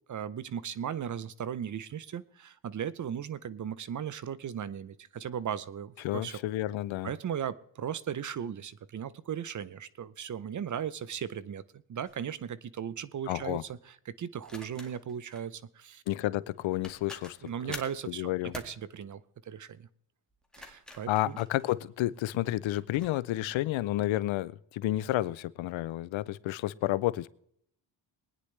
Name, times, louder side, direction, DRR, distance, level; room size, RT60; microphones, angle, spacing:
voice 1, 0.1-6.4 7.0-16.0 17.4-19.9 20.6-21.4, right 8 dB, 40° right, 0.6 m, -37 dB
voice 2, 6.0-7.1 13.3-13.6 16.1-17.4 18.1-18.5 21.1-27.3, left 15 dB, 75° left, 0.6 m, -30 dB
sound 1, 12.0-12.2 14.4-15.4 16.5-16.6 16.8-18.0 18.5-18.8 20.3-22.2 22.7-23.1, left 1 dB, ahead, 1.9 m, -46 dB
22.5 x 9.8 x 3.3 m
cardioid pair, 110°, 48 cm